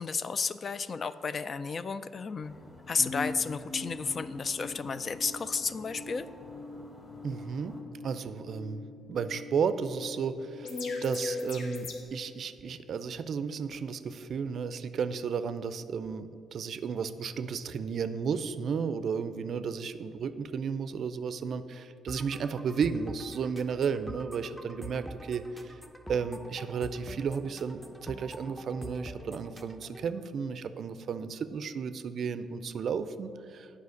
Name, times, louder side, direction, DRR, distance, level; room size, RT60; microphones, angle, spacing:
voice 1, 0.0-2.5 2.9-6.3, left 5 dB, 40° left, 14 dB, 0.3 m, -32 dB
sound 1, 2.4-7.8, left 1 dB, 25° left, 2.1 m, -52 dB
sound 2, 3.0-12.0, left 3 dB, 70° left, 0.9 m, -41 dB
voice 2, 7.2-25.8 26.1-33.7, right 6 dB, 60° right, 12 dB, 0.4 m, -33 dB
sound 3, 22.1-30.1, equal, 5° left, 0.7 m, -45 dB
8.2 x 4.9 x 6.4 m, 2.9 s
cardioid pair, 90°, 0 cm